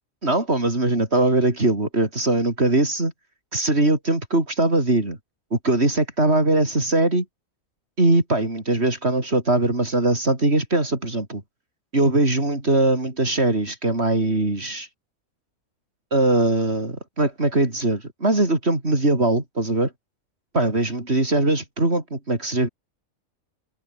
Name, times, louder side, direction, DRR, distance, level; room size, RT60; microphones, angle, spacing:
voice 1, 0.2-3.1 3.5-5.2 5.5-7.3 8.0-11.4 11.9-14.9 16.1-19.9 20.5-22.7, right 2 dB, 45° right, 5.5 m, -21 dB
omnidirectional pair, 1.5 m